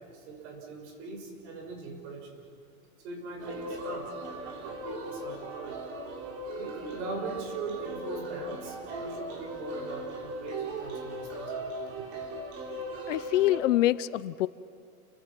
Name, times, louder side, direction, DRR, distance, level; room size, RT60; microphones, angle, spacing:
voice 1, 0.0-2.4 3.0-5.8 6.6-11.7 12.0-12.1, right 3 dB, 50° right, 2 dB, 6.2 m, -40 dB
sound 1, 3.4-13.6, right 1 dB, 35° right, 3.5 m, -38 dB
voice 2, 13.1-14.5, left 15 dB, 60° left, 17 dB, 0.7 m, -25 dB
29.0 x 24.5 x 6.1 m, 2.5 s
supercardioid pair, 170°, 43 cm